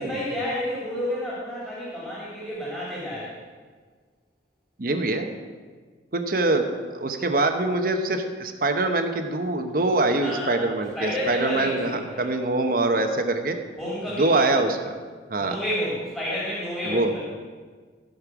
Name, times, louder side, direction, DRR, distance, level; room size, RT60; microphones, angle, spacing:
voice 1, 0.0-3.4 10.2-10.6 10.9-12.3 13.8-14.6 15.4-17.2, left 1 dB, 10° left, -8 dB, 3.1 m, -30 dB
voice 2, 4.8-5.3 6.1-13.6 14.2-14.8 15.3-15.6 16.9-17.1, right 2 dB, 50° right, 6 dB, 1.0 m, -24 dB
15.5 x 5.3 x 6.1 m, 1.5 s
head